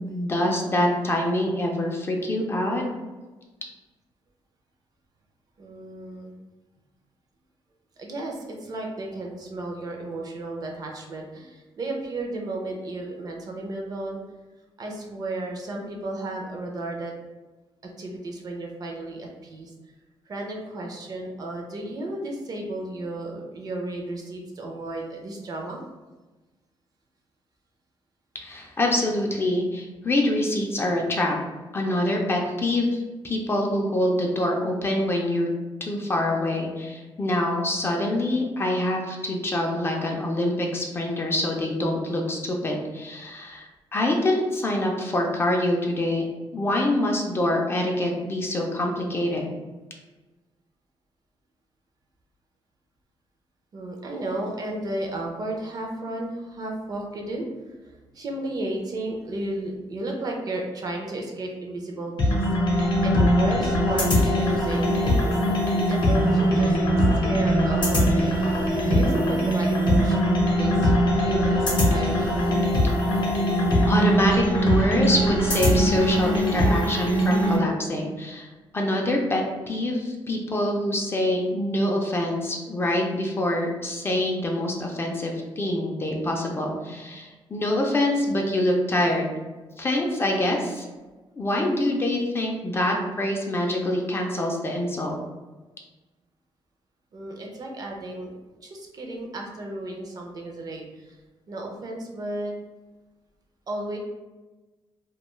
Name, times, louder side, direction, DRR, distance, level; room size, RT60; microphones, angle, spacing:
voice 1, 0.0-2.8 28.3-31.3 31.7-35.5 35.8-46.3 46.5-49.5 73.9-78.5 78.7-89.3 89.8-90.8 91.4-95.1, left 1 dB, 25° left, 0 dB, 0.3 m, -25 dB
voice 2, 5.6-6.4 8.0-14.2 14.8-17.1 18.0-19.9 20.3-25.8 47.3-47.5 53.7-65.3 65.6-66.8 67.2-68.3 68.9-70.2 70.5-72.4 97.1-98.3 98.6-101.2 101.5-102.5 103.7-104.0, right 2 dB, 40° right, 1 dB, 0.4 m, -33 dB
sound 1, 62.2-77.6, equal, 50° left, 0.7 m, -21 dB
2.2 x 2.2 x 3.0 m, 1.2 s
cardioid pair, 145°, 10 cm